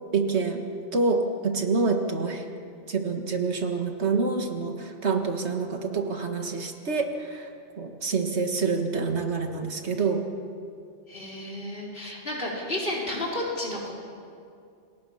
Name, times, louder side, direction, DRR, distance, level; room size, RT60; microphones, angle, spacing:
voice 1, 0.1-0.7 0.9-2.4 2.9-7.5 7.8-10.3, right 4 dB, 75° right, 4 dB, 2.0 m, -27 dB
voice 2, 11.1-13.9, left 1 dB, 55° left, -3 dB, 4.6 m, -32 dB
28.0 x 20.0 x 5.8 m, 2.4 s
omnidirectional pair, 1.1 m